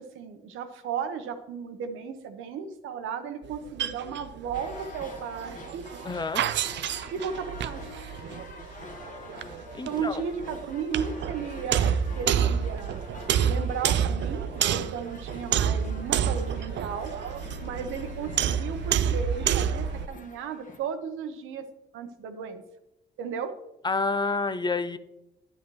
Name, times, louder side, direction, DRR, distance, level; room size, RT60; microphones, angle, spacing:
voice 1, 0.0-5.8 7.1-7.8 9.8-11.9 12.2-13.0 13.4-17.1 17.6-21.6 21.9-22.6 23.2-23.5, right 6 dB, 85° right, 7 dB, 1.0 m, -35 dB
sound 1, 3.4-20.1, right 8 dB, 65° right, 0.5 m, -29 dB
sound 2, 4.5-20.8, left 2 dB, 40° left, 1.4 m, -46 dB
voice 2, 6.0-6.5 9.7-10.2 23.8-25.0, left 3 dB, 20° left, 12 dB, 0.6 m, -28 dB
10.0 x 9.5 x 3.2 m, 0.89 s
cardioid pair, 90°, 20 cm